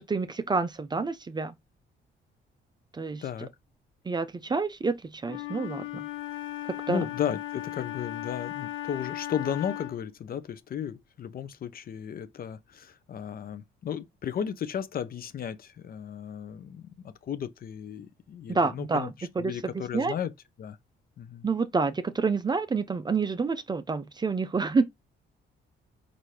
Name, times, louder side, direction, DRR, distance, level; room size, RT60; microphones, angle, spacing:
voice 1, 0.0-1.5 2.9-3.2 4.1-6.1 6.7-7.0 18.5-19.1 19.4-19.5 19.9-20.1 21.4-24.9, right 4 dB, 20° right, 0.4 m, -28 dB
Wind instrument woodwind instrument, 5.2-10.1, left 16 dB, 80° left, 1.2 m, -37 dB
voice 2, 6.9-16.9 17.2-20.3 20.6-20.8 21.2-21.5, left 8 dB, 50° left, 0.5 m, -34 dB
4.2 x 2.6 x 3.1 m
cardioid pair, 90°, 20 cm